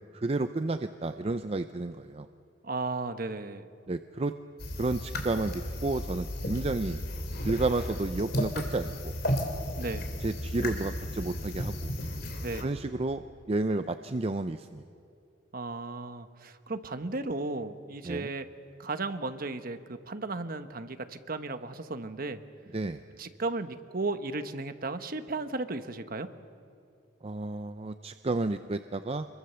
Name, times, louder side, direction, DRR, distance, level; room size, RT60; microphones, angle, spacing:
voice 1, 0.1-2.3 3.9-4.3 4.8-7.0 7.4-9.1 10.2-11.9 12.6-14.8 18.0-18.3 22.7-23.0 27.2-29.3, right 2 dB, 35° right, 9 dB, 0.5 m, -31 dB
voice 2, 2.6-3.7 9.8-10.1 12.4-12.6 15.5-18.5 18.8-22.4 23.2-26.3, right 3 dB, 50° right, 9 dB, 1.1 m, -35 dB
sound 1, 4.6-12.6, equal, 55° left, 3.1 m, -34 dB
27.0 x 22.5 x 6.9 m, 2.4 s
head